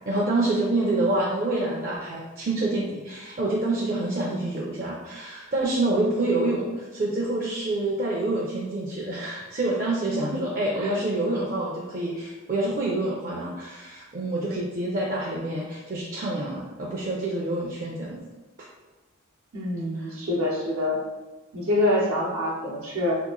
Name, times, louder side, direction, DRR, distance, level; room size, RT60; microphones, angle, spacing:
voice 1, 0.1-18.2 18.6-18.7, right 2 dB, 40° right, -3 dB, 0.4 m, -27 dB
voice 2, 19.5-21.0 21.5-23.2, left 1 dB, 90° right, -5 dB, 0.8 m, -25 dB
2.9 x 2.4 x 3.7 m, 1.2 s
head